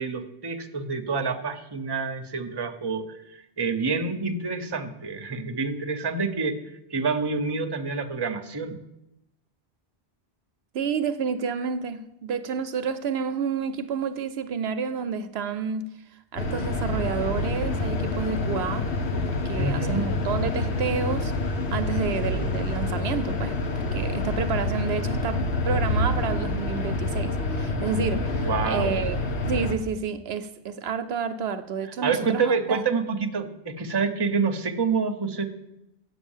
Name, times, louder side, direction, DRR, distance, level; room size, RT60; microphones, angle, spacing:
voice 1, 0.0-6.6 6.9-8.8 19.5-20.0 28.4-29.0 32.0-35.5, right 4 dB, 25° right, 6 dB, 0.7 m, -27 dB
voice 2, 10.7-15.9 16.3-18.9 19.3-21.3 21.7-23.6 23.9-29.2 29.5-32.8, right 6 dB, 70° right, 10 dB, 0.8 m, -30 dB
sound 1, 16.4-29.8, left 2 dB, 75° left, 1.3 m, -27 dB
8.0 x 7.5 x 7.2 m, 0.87 s
omnidirectional pair, 1.1 m